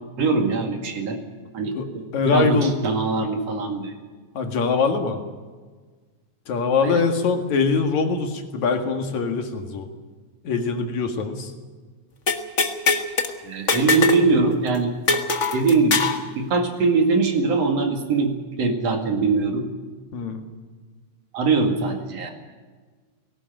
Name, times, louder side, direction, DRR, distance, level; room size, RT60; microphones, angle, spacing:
voice 1, 0.2-1.2 1.5-3.9 6.8-7.0 13.4-14.9 15.5-16.0 16.4-18.3 18.6-19.7 21.3-22.3, right 4 dB, 60° right, 4 dB, 3.2 m, -22 dB
voice 2, 2.1-2.8 4.3-5.2 6.5-9.9 10.4-11.5 20.1-20.4, left 4 dB, 75° left, 5 dB, 3.2 m, -23 dB
sound 1, 12.3-13.3 13.7-14.3 14.5-14.6 15.1-16.2, left 4 dB, 40° left, 1.1 m, -22 dB
18.5 x 17.5 x 9.1 m, 1.4 s
omnidirectional pair, 3.3 m